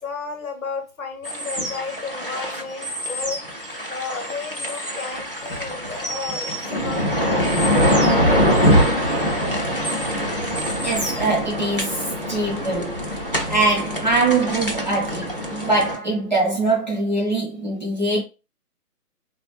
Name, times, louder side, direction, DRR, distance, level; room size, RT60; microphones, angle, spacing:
voice 1, 0.0-8.3, left 4 dB, 60° left, 0.8 m, -33 dB
sound 1, 1.2-16.0, equal, 40° left, 0.4 m, -23 dB
voice 2, 10.8-13.1 13.5-18.2, right 2 dB, 30° right, 0.7 m, -23 dB
3.5 x 2.2 x 2.9 m
figure-of-eight pair, 145°, 47 cm